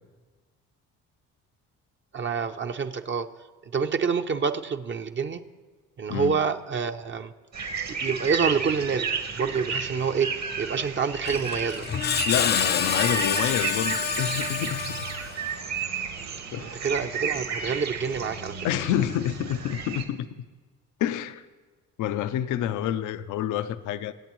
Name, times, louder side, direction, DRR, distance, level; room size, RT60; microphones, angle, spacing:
voice 1, 2.1-3.3 3.7-5.4 6.0-7.3 7.9-9.1 9.3-11.9 16.6-18.5, right 6 dB, 40° right, 0.6 m, -27 dB
sound 1, 7.5-20.0, right 6 dB, 60° right, 1.4 m, -33 dB
Screech, 11.2-15.5, left 7 dB, 35° left, 0.5 m, -28 dB
voice 2, 12.3-15.1 16.5-16.8 18.6-20.3 21.0-21.4 22.0-24.1, left 11 dB, 80° left, 0.6 m, -28 dB
23.5 x 8.1 x 3.1 m
cardioid pair, 90°, 30 cm